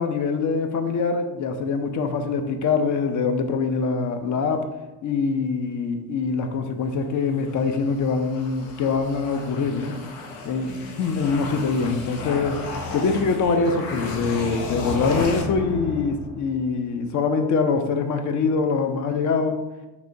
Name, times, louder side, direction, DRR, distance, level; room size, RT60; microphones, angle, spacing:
voice 1, 0.0-4.7 5.0-10.0 10.4-12.7 12.9-19.6, left 4 dB, 40° left, 7 dB, 0.4 m, -24 dB
sound 1, 7.3-16.7, left 3 dB, 80° left, 0.7 m, -33 dB
3.4 x 2.8 x 2.5 m, 1.0 s
hypercardioid pair, 70°, 48 cm